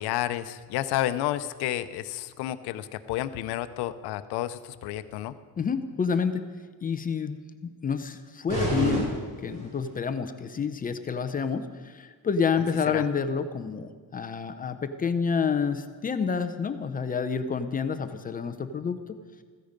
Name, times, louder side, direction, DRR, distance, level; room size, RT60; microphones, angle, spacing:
voice 1, 0.0-5.4 12.9-13.0, left 13 dB, 90° left, 12 dB, 0.8 m, -31 dB
voice 2, 5.6-6.5 6.8-9.1 9.4-19.2, left 6 dB, 20° left, 9 dB, 0.6 m, -29 dB
sound 1, 8.5-10.0, right 1 dB, 55° right, 6.0 m, -29 dB
15.0 x 15.0 x 5.2 m, 1.5 s
cardioid pair, 170°, 38 cm